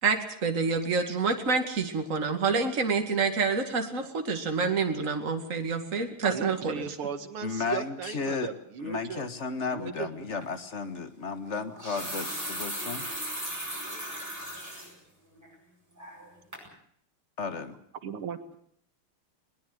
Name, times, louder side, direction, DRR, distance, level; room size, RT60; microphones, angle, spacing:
voice 1, 0.0-6.7, right 4 dB, 35° right, 5 dB, 2.6 m, -27 dB
voice 2, 6.2-9.3 9.7-10.1 18.0-18.6, right 7 dB, 80° right, 9 dB, 2.6 m, -36 dB
voice 3, 7.4-8.5 8.8-13.1 17.4-17.7, left 4 dB, 35° left, 10 dB, 1.7 m, -34 dB
sound 1, 10.4-10.6 11.6-14.9 15.4-15.5 16.0-16.3 16.5-16.7, right 1 dB, 5° right, 7.9 m, -37 dB
21.5 x 20.0 x 7.9 m, 0.64 s
omnidirectional pair, 2.4 m